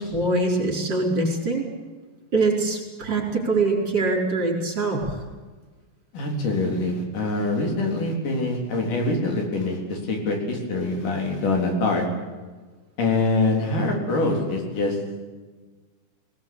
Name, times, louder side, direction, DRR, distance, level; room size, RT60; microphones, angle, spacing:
voice 1, 0.0-1.6 2.3-5.0, right 3 dB, 35° right, 0 dB, 5.5 m, -23 dB
voice 2, 6.1-12.1 13.0-15.0, left 2 dB, 90° left, 1 dB, 5.5 m, -24 dB
20.0 x 19.5 x 8.7 m, 1.3 s
omnidirectional pair, 3.6 m